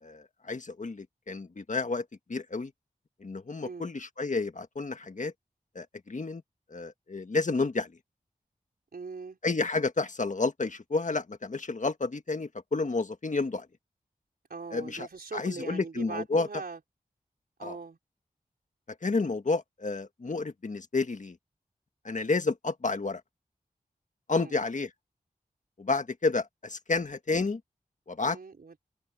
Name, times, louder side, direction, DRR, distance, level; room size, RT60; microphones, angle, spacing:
voice 1, 0.0-2.0 2.3-2.7 3.2-5.3 5.8-6.4 6.7-7.9 9.4-13.7 14.7-16.5 17.6-17.8 19.0-21.4 22.1-23.2 24.3-24.9 25.8-27.6 28.1-28.4, left 3 dB, 55° left, 1.7 m, -30 dB
voice 2, 8.9-9.4 14.5-16.8 17.6-18.0 24.3-24.5 28.2-28.7, right 4 dB, 75° right, 4.4 m, -41 dB
open air
wide cardioid pair, 60°, 16 cm